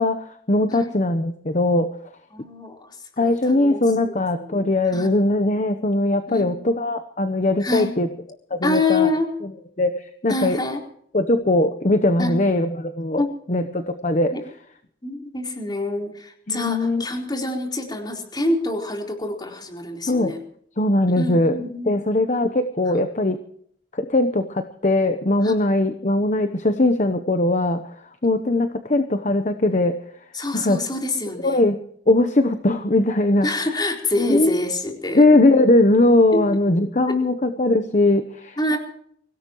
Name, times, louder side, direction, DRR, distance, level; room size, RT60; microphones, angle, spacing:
voice 1, 0.0-1.9 3.2-8.1 8.5-9.1 9.8-10.6 11.1-13.2 13.5-14.3 16.5-17.0 20.1-20.3 20.8-23.4 23.9-27.8 28.2-30.0 30.5-30.8 31.4-31.8 32.1-33.5 34.3-34.6 35.1-38.8, left 2 dB, 45° left, 8 dB, 0.9 m, -20 dB
voice 2, 2.3-2.9 3.2-4.1 4.5-4.6 4.9-5.1 6.3-6.6 7.6-7.9 8.6-9.3 10.3-10.8 12.2-12.4 13.2-13.3 14.3-14.4 15.0-20.4 21.2-22.0 25.4-25.5 30.3-31.6 33.4-35.2 36.3-36.4 37.1-37.2 38.6-38.8, left 2 dB, 25° left, 2 dB, 4.0 m, -26 dB
24.5 x 17.5 x 3.1 m, 0.65 s
head